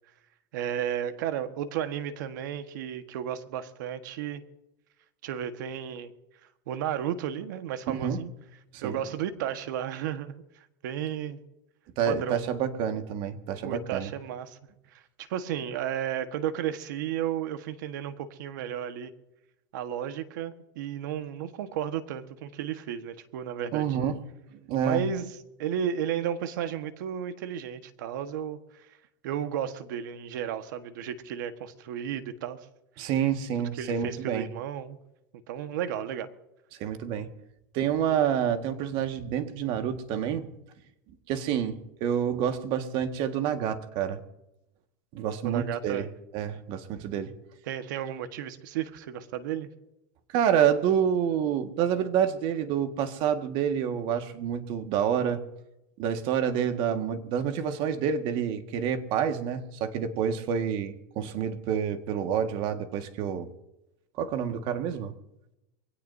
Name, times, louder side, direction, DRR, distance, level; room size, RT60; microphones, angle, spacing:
voice 1, 0.5-4.4 5.2-6.1 6.7-8.3 8.8-10.3 10.8-11.4 12.1-12.4 13.6-14.6 14.9-19.1 19.7-23.9 24.8-25.3 25.6-28.9 29.2-32.7 33.0-33.1 33.8-35.0 35.5-36.3 45.4-46.0 47.7-49.7, right 9 dB, 75° right, 9 dB, 1.4 m, -33 dB
voice 2, 7.9-8.2 8.7-9.0 12.0-14.1 23.7-24.2 24.7-25.1 33.0-34.5 36.8-37.3 37.7-40.5 41.3-44.2 45.1-46.1 46.3-47.3 50.3-55.4 56.0-63.5 64.2-65.2, right 8 dB, 55° right, 7 dB, 1.8 m, -28 dB
24.0 x 17.0 x 2.7 m, 0.90 s
supercardioid pair, 125°, 10 cm